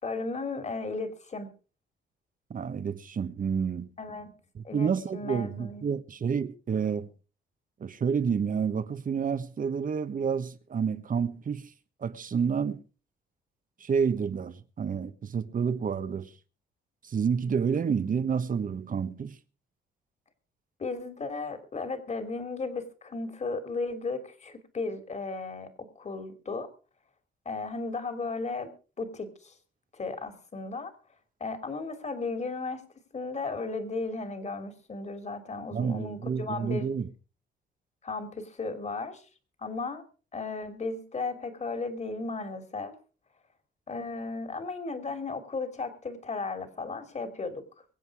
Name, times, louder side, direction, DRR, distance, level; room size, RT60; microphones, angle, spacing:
voice 1, 0.0-1.5 4.0-4.3 4.6-5.9 20.8-26.7 27.4-28.7 29.0-29.5 29.9-30.9 31.4-32.8 33.1-36.9 38.0-39.2 39.6-40.0 40.3-42.9 43.9-47.6, left 3 dB, 35° left, 3.0 m, -35 dB
voice 2, 2.5-3.9 4.5-7.1 7.8-11.7 12.0-12.8 13.8-16.3 17.0-19.4 35.7-37.1, right 6 dB, 45° right, 1.3 m, -29 dB
24.0 x 8.0 x 4.8 m
cardioid pair, 90°, 20 cm